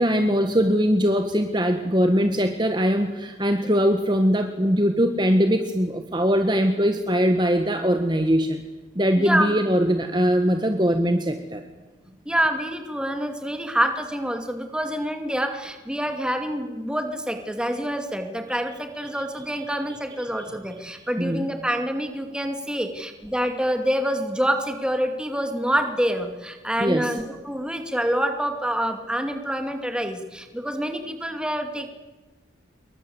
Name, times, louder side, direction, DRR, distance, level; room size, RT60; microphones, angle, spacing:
voice 1, 0.0-8.6 8.9-11.6 19.7-19.8 21.2-21.4 26.8-27.1, equal, 25° right, 6 dB, 1.7 m, -21 dB
voice 2, 9.2-9.6 12.3-31.9, equal, 5° right, 5 dB, 2.5 m, -26 dB
28.0 x 23.0 x 8.1 m, 1.2 s
head